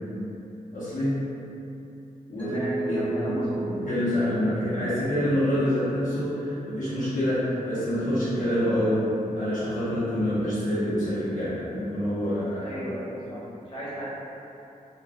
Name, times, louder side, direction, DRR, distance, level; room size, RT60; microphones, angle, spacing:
voice 1, 0.7-1.2 2.3-2.5 2.8-9.1 9.3-12.7, equal, 65° left, -12 dB, 0.8 m, -26 dB
voice 2, 2.4-3.5 12.5-14.1, equal, 35° left, -9 dB, 1.0 m, -34 dB
Mallet percussion, 2.4-5.3, right 4 dB, 10° left, 0.5 m, -35 dB
2.4 x 2.2 x 3.6 m, 2.9 s
wide cardioid pair, 90°, 15 cm